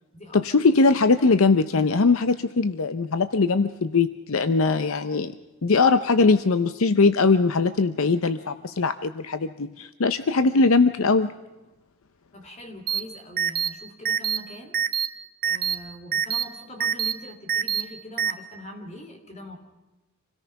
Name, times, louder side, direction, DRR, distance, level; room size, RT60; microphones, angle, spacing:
voice 1, 0.3-5.4 5.6-11.3, left 4 dB, 65° left, 11 dB, 0.7 m, -21 dB
voice 2, 12.3-14.8 15.4-19.6, left 1 dB, 30° left, 6 dB, 3.0 m, -42 dB
sound 1, 12.9-13.0 13.4-13.7 14.0-14.4 14.7-15.1 15.4-15.7 16.1-16.4 16.8-17.1 17.5-17.8 18.2-18.3, right 8 dB, 40° right, 0.8 m, -24 dB
26.5 x 17.5 x 5.8 m, 1.1 s
head